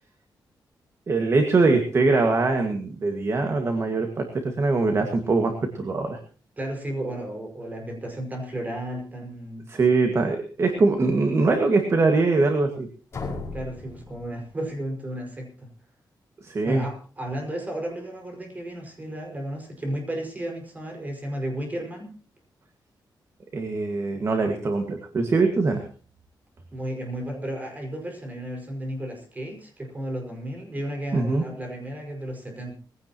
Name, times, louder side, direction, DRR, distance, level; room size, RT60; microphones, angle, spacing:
voice 1, 1.1-6.2 9.7-12.9 16.4-16.8 23.5-25.8 31.1-31.4, right 3 dB, 35° right, 4 dB, 1.8 m, -22 dB
voice 2, 6.6-9.7 13.5-15.7 16.6-22.1 26.7-32.8, right 1 dB, 20° right, 2 dB, 5.4 m, -33 dB
sound 1, 13.1-15.0, left 3 dB, 30° left, 5.5 m, -37 dB
21.0 x 16.0 x 3.0 m, 0.39 s
wide cardioid pair, 170°, 8 cm